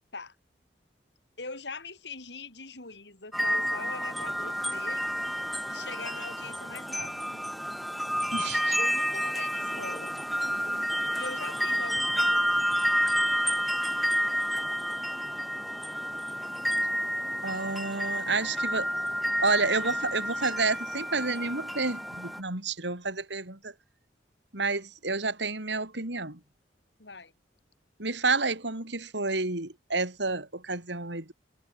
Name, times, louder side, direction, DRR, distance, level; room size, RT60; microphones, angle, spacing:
voice 1, 1.4-5.1 5.7-7.4 8.8-10.2 11.1-12.5 27.0-27.3, left 3 dB, 70° left, 5.8 m, -42 dB
sound 1, 3.3-22.4, equal, ahead, 1.0 m, -30 dB
voice 2, 8.3-8.8 17.4-18.9 19.4-23.7 24.5-26.4 28.0-31.3, right 3 dB, 75° right, 4.1 m, -30 dB
head